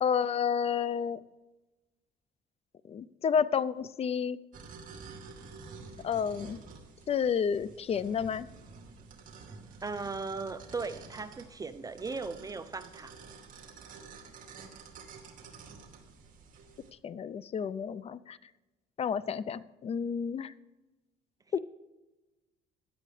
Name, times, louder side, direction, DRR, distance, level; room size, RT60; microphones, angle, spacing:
voice 1, 0.0-1.2 2.9-4.4 6.0-6.6 7.1-8.5 17.0-18.4 19.0-20.5 21.5-21.6, left 7 dB, 35° left, 18 dB, 0.5 m, -30 dB
sound 1, 4.5-16.9, right 4 dB, 50° right, 2.5 m, -50 dB
voice 2, 9.8-13.1, right 4 dB, 20° right, 11 dB, 0.5 m, -37 dB
16.5 x 10.5 x 3.3 m, 1.1 s
cardioid pair, 110°, 17 cm